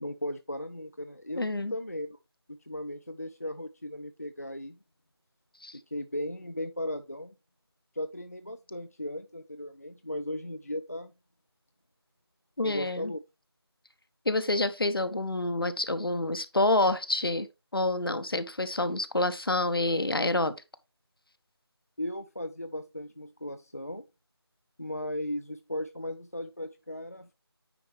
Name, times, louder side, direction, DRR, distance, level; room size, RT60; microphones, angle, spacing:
voice 1, 0.0-2.2 2.5-4.8 5.7-7.3 7.9-11.1 12.6-13.2 22.0-24.1 24.8-27.3, left 1 dB, 35° left, 0.4 m, -36 dB
voice 2, 1.4-1.7 5.6-5.8 12.6-13.1 14.3-17.5 17.7-20.5, left 2 dB, 60° left, 0.9 m, -27 dB
9.3 x 4.3 x 3.3 m
figure-of-eight pair, 170°, 14 cm